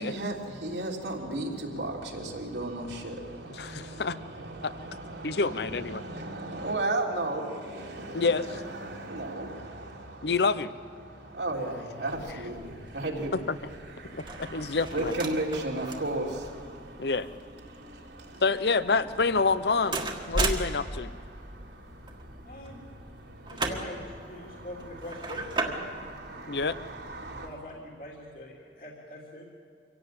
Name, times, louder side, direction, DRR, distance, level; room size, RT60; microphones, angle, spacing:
voice 1, 0.0-10.4 11.0-18.4 19.1-19.7 20.2-23.7 24.2-27.5, right 2 dB, 80° right, -2 dB, 3.6 m, -36 dB
voice 2, 3.6-4.2 4.6-4.7 5.2-6.0 8.1-8.5 10.2-10.7 13.5-13.6 14.4-15.1 17.0-17.3 18.4-21.1 26.5-26.8, left 4 dB, 65° left, 14 dB, 0.7 m, -27 dB
sound 1, 12.1-27.6, right 2 dB, 25° right, 1.7 m, -38 dB
voice 3, 22.4-22.8 23.5-25.9 27.4-29.4, left 1 dB, 50° left, -2 dB, 3.0 m, -43 dB
25.0 x 17.0 x 8.7 m, 2.4 s
head